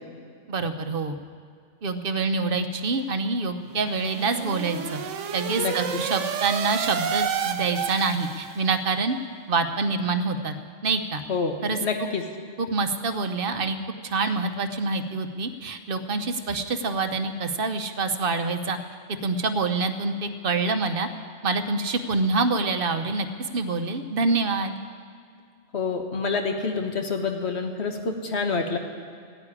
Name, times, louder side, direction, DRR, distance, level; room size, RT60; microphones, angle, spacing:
voice 1, 0.5-1.2 1.8-5.0 5.3-9.2 9.5-10.6 10.8-11.2 11.6-11.8 12.6-13.8 14.0-18.8 19.2-21.1 21.4-23.3 23.5-24.7, right 3 dB, 50° right, 8 dB, 1.1 m, -26 dB
sound 1, 3.7-8.7, right 8 dB, 85° right, 1.1 m, -30 dB
voice 2, 11.3-12.2 25.7-28.8, left 4 dB, 60° left, 4 dB, 1.6 m, -27 dB
15.0 x 9.8 x 9.9 m, 2.2 s
omnidirectional pair, 1.2 m